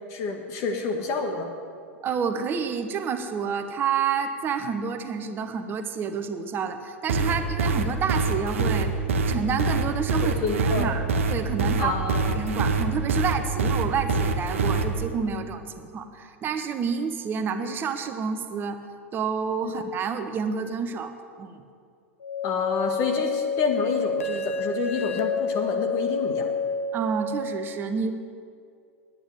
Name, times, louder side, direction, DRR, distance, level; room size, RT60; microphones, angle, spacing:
voice 1, 0.1-1.5 10.2-11.0 11.8-12.3 19.6-19.7 22.4-26.5, left 4 dB, 40° left, 3 dB, 1.6 m, -28 dB
voice 2, 2.0-8.9 9.3-18.8 19.1-21.1 21.4-21.6 26.9-28.1, right 6 dB, 30° right, 8 dB, 1.1 m, -29 dB
sound 1, 7.1-14.8, right 4 dB, 65° right, 1.1 m, -24 dB
sound 2, 22.2-27.2, left 5 dB, 75° left, 1.1 m, -28 dB
10.0 x 9.3 x 8.5 m, 2.3 s
figure-of-eight pair, 95°, 7 cm